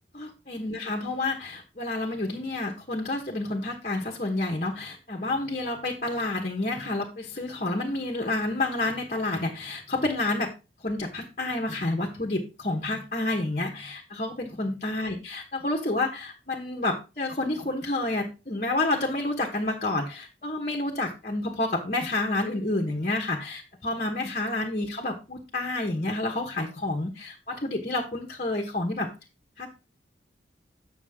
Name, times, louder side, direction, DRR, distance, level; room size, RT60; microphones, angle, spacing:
voice 1, 0.1-10.5 10.8-29.1 29.6-29.7, left 2 dB, 40° left, 1 dB, 1.3 m, -29 dB
8.3 x 6.5 x 3.6 m, 0.29 s
head